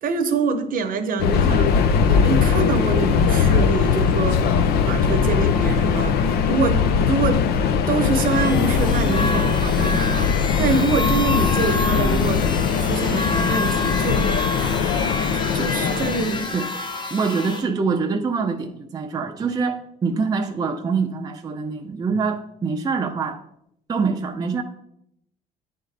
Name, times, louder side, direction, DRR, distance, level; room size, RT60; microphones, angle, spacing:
voice 1, 0.0-1.7 2.1-4.5 4.9-7.4 7.8-10.3 10.6-12.5 12.8-14.3 15.5-16.5, right 4 dB, 55° right, 0.8 m, -25 dB
Subway metro underground, 1.2-16.5, left 6 dB, 70° left, 0.5 m, -20 dB
sound 1, 8.0-17.6, left 2 dB, 25° left, 0.7 m, -28 dB
voice 2, 17.1-23.4 23.9-24.6, right 5 dB, 25° right, 0.5 m, -24 dB
10.0 x 3.7 x 3.3 m
cardioid pair, 110°, 17 cm